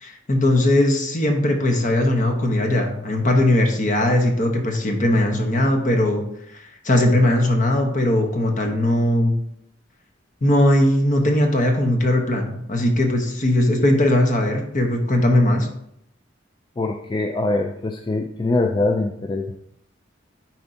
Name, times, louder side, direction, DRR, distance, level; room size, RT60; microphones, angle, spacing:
voice 1, 0.0-6.2 6.5-9.3 10.4-15.7, left 1 dB, 45° left, 3 dB, 1.0 m, -19 dB
voice 2, 16.8-19.5, left 2 dB, 25° left, 4 dB, 0.4 m, -23 dB
10.0 x 4.4 x 2.7 m, 0.75 s
head